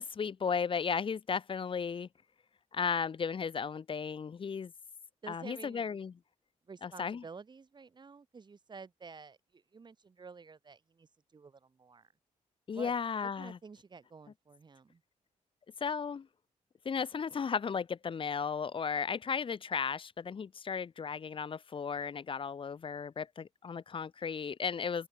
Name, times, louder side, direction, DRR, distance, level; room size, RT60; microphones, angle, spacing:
voice 1, 0.0-2.1 2.7-4.7 5.3-6.1 6.8-7.2 12.7-13.6 15.8-16.3 16.8-25.1, left 6 dB, 40° left, 0.9 m, -35 dB
voice 2, 5.2-6.0 6.7-12.1 12.7-15.0, right 5 dB, 35° right, 2.2 m, -51 dB
open air
cardioid pair, 120°, 14 cm